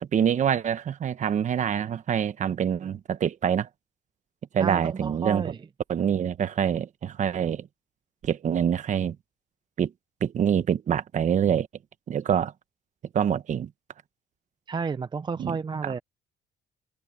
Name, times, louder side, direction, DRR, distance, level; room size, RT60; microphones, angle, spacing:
voice 1, 0.0-3.7 4.5-5.5 5.9-7.7 8.2-9.2 9.8-9.9 10.2-11.7 12.1-12.5 13.1-13.7 15.4-15.6 15.8-15.9, right 8 dB, 45° right, 1.3 m, -25 dB
voice 2, 4.6-5.6 14.7-16.0, right 5 dB, 25° right, 0.7 m, -31 dB
cardioid pair, 110°, 17 cm